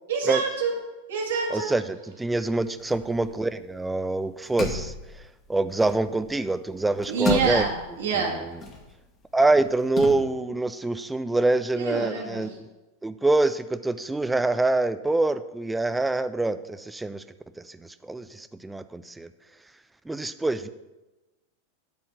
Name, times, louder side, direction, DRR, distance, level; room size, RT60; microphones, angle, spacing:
voice 1, 0.1-0.7 1.1-1.7 7.1-8.4 11.8-12.6, right 5 dB, 60° right, -1 dB, 2.1 m, -27 dB
voice 2, 1.5-4.9 5.5-7.7 8.2-8.3 9.3-12.7 13.0-17.2 17.6-19.3 20.1-20.7, right 2 dB, 5° right, 12 dB, 0.5 m, -25 dB
sound 1, 2.3-4.0 4.2-6.5 6.8-10.1, left 3 dB, 25° left, 1.7 m, -34 dB
11.5 x 4.3 x 6.1 m, 1.1 s
figure-of-eight pair, 90°, 0 cm